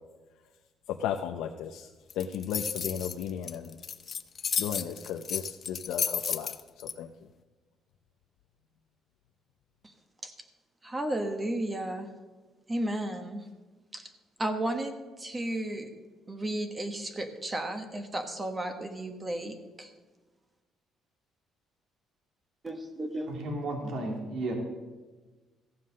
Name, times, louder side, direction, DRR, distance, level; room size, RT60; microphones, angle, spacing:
voice 1, 1.0-1.9 2.2-3.8 4.6-6.5 7.0-7.1, left 8 dB, 90° left, 4 dB, 0.6 m, -34 dB
sound 1, 2.1-6.9, left 7 dB, 40° left, 0.6 m, -32 dB
voice 2, 10.8-12.1 12.7-13.4 13.9-14.0 14.4-15.9 16.3-19.9 22.6-23.3, right 1 dB, 20° right, 6 dB, 1.2 m, -33 dB
voice 3, 23.3-24.5, right 2 dB, 65° right, 2 dB, 2.5 m, -33 dB
15.0 x 7.7 x 6.4 m, 1.3 s
cardioid pair, 135°, 0 cm